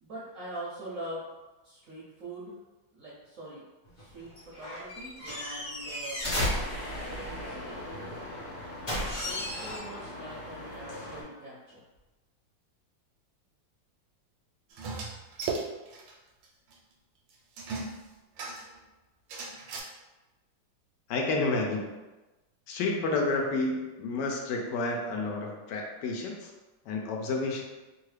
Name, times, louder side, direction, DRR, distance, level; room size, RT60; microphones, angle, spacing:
voice 1, 0.0-1.3 1.6-2.5 2.9-3.6 4.0-6.3 7.2-7.9 9.1-11.8, right 1 dB, 65° right, -6 dB, 0.8 m, -43 dB
sound 1, 3.8-7.5 8.9-9.8, left 1 dB, 35° left, 0.9 m, -34 dB
sound 2, 6.2-11.2, left 1 dB, 55° left, 1.1 m, -41 dB
sound 3, 14.7-16.1 16.4-16.5 16.7-16.8 17.6-18.8 19.3-19.8, right 4 dB, 80° right, 1.3 m, -36 dB
voice 2, 21.1-21.9 22.7-26.5 26.9-27.6, left 3 dB, 75° left, 1 dB, 1.1 m, -30 dB
3.0 x 2.4 x 3.2 m, 1.1 s
omnidirectional pair, 2.0 m